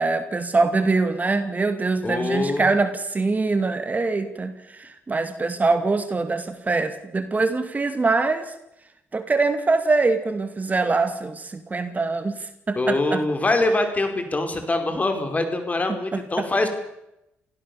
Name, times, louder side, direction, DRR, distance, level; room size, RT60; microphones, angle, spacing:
voice 1, 0.0-8.4 9.1-13.2 16.1-16.5, right 3 dB, 30° right, 9 dB, 2.4 m, -23 dB
voice 2, 2.0-2.7 12.7-16.7, left 2 dB, 30° left, 6 dB, 5.1 m, -24 dB
26.5 x 16.5 x 7.1 m, 0.87 s
supercardioid pair, 60°, 5 cm